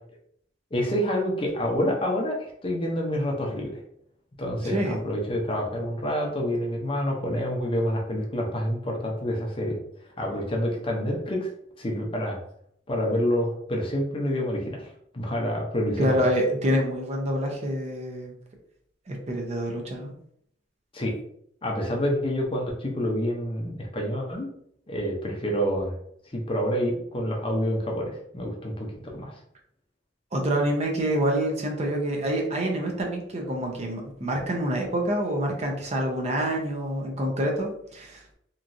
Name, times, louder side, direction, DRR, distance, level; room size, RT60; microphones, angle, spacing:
voice 1, 0.7-3.8 4.4-9.8 10.2-11.5 11.8-12.4 12.9-14.9 15.1-16.1 20.9-21.1 21.6-24.5 24.9-25.9 26.3-29.4, equal, 30° left, 0 dB, 0.6 m, -27 dB
voice 2, 4.6-5.0 16.0-18.4 19.1-20.1 30.3-38.3, right 1 dB, 40° right, 1 dB, 0.6 m, -27 dB
3.0 x 2.4 x 2.5 m, 0.70 s
head